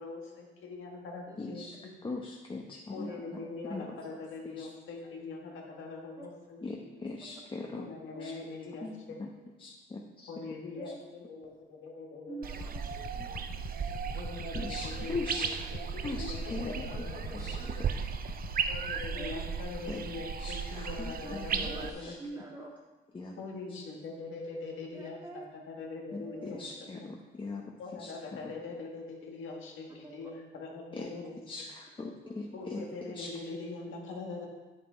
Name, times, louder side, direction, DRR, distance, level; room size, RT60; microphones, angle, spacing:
voice 1, 0.0-1.9 2.9-6.9 7.7-9.3 10.3-12.4 14.1-17.9 18.7-22.1 23.4-27.1 27.8-31.4 32.5-34.5, left 3 dB, 80° left, 0 dB, 1.9 m, -43 dB
voice 2, 1.4-3.1 3.7-3.9 4.6-4.7 6.6-7.9 8.2-8.4 8.8-9.3 9.6-10.3 14.5-15.8 16.0-16.9 17.3-17.6 19.8-20.0 20.4-21.7 22.0-22.1 23.1-23.4 23.7-23.8 26.1-28.5 30.9-31.1 31.5-32.9 33.1-33.3, left 3 dB, 25° left, 0 dB, 1.0 m, -40 dB
voice 3, 3.0-4.3 6.2-6.3 8.1-8.7 10.7-11.0 12.3-13.4 16.5-17.7 19.2-19.3 21.2-21.3 21.6-22.7 24.9-25.4 26.1-27.1 30.0-30.1 32.0-32.9, right 2 dB, 15° right, -1 dB, 2.1 m, -48 dB
sound 1, 12.4-21.9, right 6 dB, 50° right, 0.6 m, -36 dB
sound 2, 12.5-20.7, left 7 dB, 50° left, 0.8 m, -46 dB
8.5 x 7.4 x 4.5 m, 1.2 s
cardioid pair, 90°, 20 cm